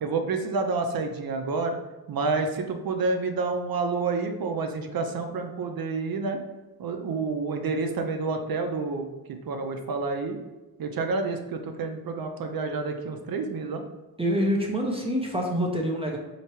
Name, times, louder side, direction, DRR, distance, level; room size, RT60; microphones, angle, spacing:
voice 1, 0.0-1.8 2.1-6.4 6.8-10.4 10.8-13.8, right 4 dB, 65° right, 5 dB, 0.6 m, -29 dB
voice 2, 14.2-16.2, equal, 15° right, -1 dB, 0.5 m, -26 dB
4.4 x 2.9 x 3.0 m, 1.1 s
wide cardioid pair, 130°, 38 cm